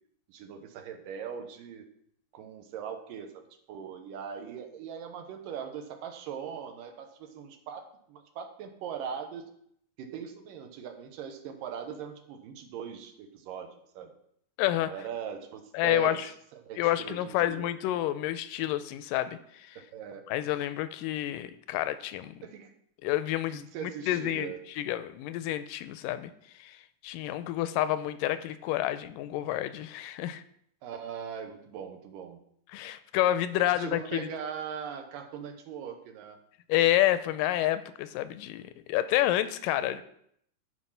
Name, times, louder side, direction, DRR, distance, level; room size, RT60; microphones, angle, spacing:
voice 1, 0.3-1.9 2.3-9.5 10.0-14.1 14.8-17.7 19.8-20.3 22.4-22.7 23.5-24.7 30.8-32.4 33.6-36.4 39.8-40.0, right 7 dB, 85° right, 6 dB, 2.7 m, -40 dB
voice 2, 14.6-14.9 15.7-16.3 16.8-19.8 20.3-22.3 23.0-26.3 26.6-26.8 27.0-30.4 32.7-34.3 36.7-40.0, left 13 dB, 85° left, 13 dB, 2.2 m, -29 dB
12.5 x 4.9 x 5.6 m, 0.69 s
omnidirectional pair, 3.8 m